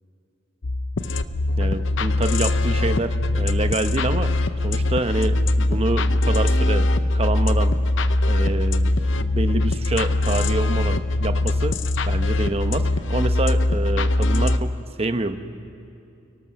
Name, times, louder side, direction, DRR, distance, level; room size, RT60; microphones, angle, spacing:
sound 1, 0.6-14.6, left 2 dB, 75° left, 0.7 m, -21 dB
voice 1, 1.6-4.3 4.6-7.8 8.3-8.9 9.2-11.8 12.1-14.7 15.0-15.4, right 2 dB, 30° right, 9 dB, 0.9 m, -27 dB
29.5 x 18.0 x 6.3 m, 2.7 s
head